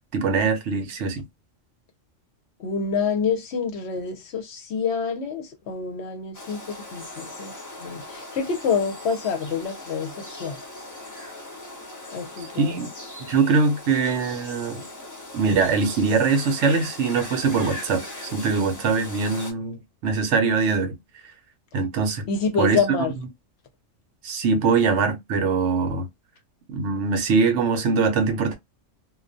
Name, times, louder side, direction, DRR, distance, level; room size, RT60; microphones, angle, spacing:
voice 1, 0.1-1.2 12.6-12.9 13.3-14.8 15.3-21.0 21.7-22.2 22.6-22.8 24.2-26.1 26.7-28.6, right 4 dB, 70° right, 0.9 m, -22 dB
voice 2, 2.6-7.5 7.8-10.6 12.1-12.8 22.3-23.1, left 5 dB, 65° left, 0.8 m, -27 dB
sound 1, 6.3-19.5, left 2 dB, 25° left, 0.4 m, -39 dB
2.3 x 2.2 x 2.5 m
omnidirectional pair, 1.3 m